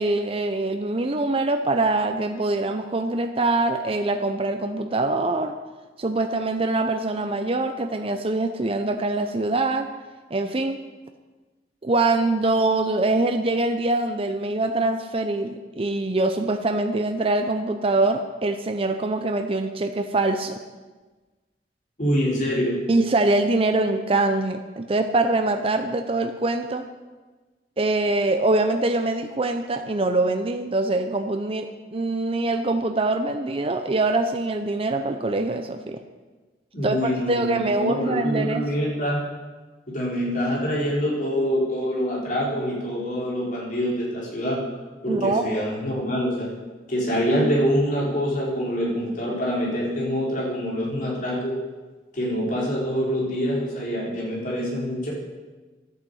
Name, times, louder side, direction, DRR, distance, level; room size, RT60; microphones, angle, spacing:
voice 1, 0.0-5.5 6.0-9.9 10.3-10.8 11.8-20.6 22.9-26.8 27.8-36.0 36.8-38.6 45.1-45.4, right 2 dB, 30° right, 6 dB, 0.6 m, -24 dB
voice 2, 22.0-22.8 36.7-39.2 39.9-44.6 45.0-46.5 46.9-51.5 52.1-55.1, equal, 45° left, -4 dB, 4.1 m, -25 dB
11.0 x 9.4 x 7.8 m, 1.3 s
head